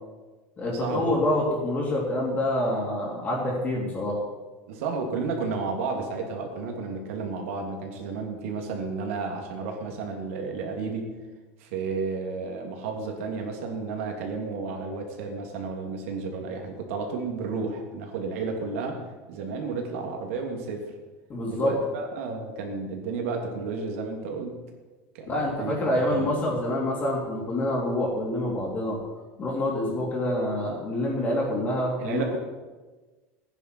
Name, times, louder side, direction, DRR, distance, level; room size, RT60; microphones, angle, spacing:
voice 1, 0.6-4.2 21.3-21.7 25.3-29.0 29.4-32.4, left 1 dB, 20° left, -3 dB, 3.0 m, -27 dB
voice 2, 4.7-11.1 11.6-19.0 19.3-20.8 21.5-24.6 25.1-25.8 26.1-26.3 32.0-32.4, right 4 dB, 85° right, 2 dB, 2.8 m, -32 dB
15.5 x 9.9 x 4.6 m, 1.3 s
cardioid pair, 165°, 7 cm